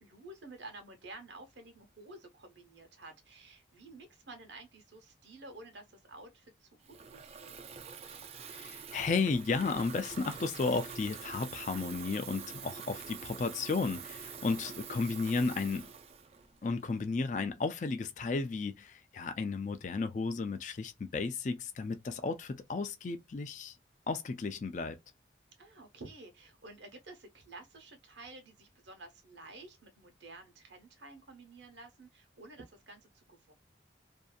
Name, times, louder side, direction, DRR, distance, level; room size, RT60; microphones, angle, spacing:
voice 1, 0.0-7.7 14.7-14.8 25.6-33.5, right 2 dB, 80° right, 0.9 m, -51 dB
Water tap faucet / Fill (with liquid), 6.8-17.1, right 6 dB, 35° right, 0.3 m, -46 dB
voice 2, 8.5-15.9 16.6-23.8 24.1-25.0, left 4 dB, 40° left, 0.4 m, -33 dB
2.6 x 2.5 x 2.2 m
head